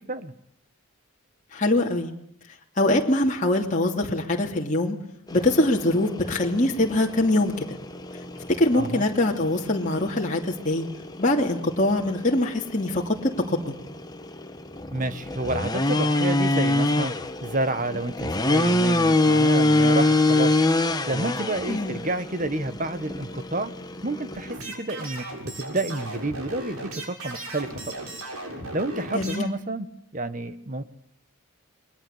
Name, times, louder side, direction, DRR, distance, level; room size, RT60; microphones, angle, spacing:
voice 1, 1.5-2.1 2.8-5.0 5.3-7.7 8.5-10.9 11.2-13.7 21.7-22.0 29.1-29.5, left 1 dB, 35° left, 0 dB, 2.7 m, -23 dB
sound 1, 5.3-24.5, left 2 dB, 20° left, 1.3 m, -26 dB
voice 2, 14.9-17.1 17.4-20.5 21.1-23.7 24.0-28.1 28.7-29.9 30.1-30.8, right 2 dB, 35° right, 12 dB, 1.5 m, -29 dB
sound 2, 24.5-29.4, right 1 dB, 85° right, 6.9 m, -36 dB
28.5 x 22.5 x 8.1 m, 0.68 s
head